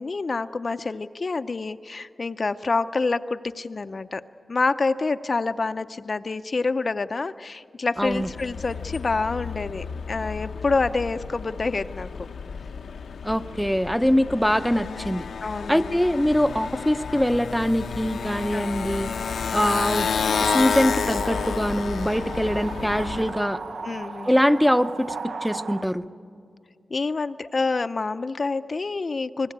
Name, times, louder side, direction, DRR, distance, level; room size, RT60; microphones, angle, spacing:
voice 1, 0.0-4.2 4.5-12.1 15.4-16.0 18.5-18.7 19.6-19.9 23.8-24.4 26.9-29.5, left 3 dB, 45° left, 11 dB, 0.5 m, -27 dB
Motorcycle, 8.0-23.4, left 6 dB, 90° left, 0.7 m, -31 dB
voice 2, 8.0-8.3 13.2-15.3 15.7-19.1 19.5-20.1 20.4-23.6 24.3-26.0, equal, ahead, 11 dB, 0.7 m, -23 dB
sound 1, 19.9-25.8, right 4 dB, 75° right, 0.8 m, -36 dB
28.0 x 20.0 x 8.7 m, 2.3 s
wide cardioid pair, 90°, 0 cm